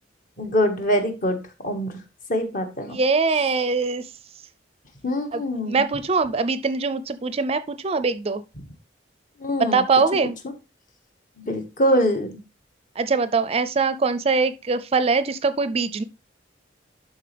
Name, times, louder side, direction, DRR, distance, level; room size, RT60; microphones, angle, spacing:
voice 1, 0.4-2.0 2.3-3.0 5.0-5.8 9.4-9.8 11.4-12.4, equal, 45° left, 1.5 m, -24 dB
voice 2, 2.9-4.0 5.3-8.4 9.6-10.4 13.0-16.0, right 4 dB, 35° right, 0.4 m, -22 dB
11.5 x 4.1 x 3.3 m
head